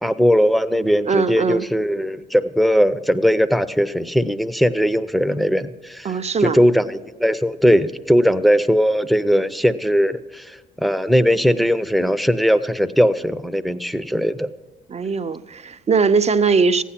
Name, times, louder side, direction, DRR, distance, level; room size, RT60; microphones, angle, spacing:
voice 1, 0.0-6.1 6.4-14.5, equal, ahead, 13 dB, 0.7 m, -19 dB
voice 2, 1.1-1.7 6.0-6.6 14.9-16.8, right 5 dB, 35° right, 10 dB, 0.6 m, -20 dB
15.0 x 10.0 x 5.9 m, 1.3 s
cardioid pair, 90°, 20 cm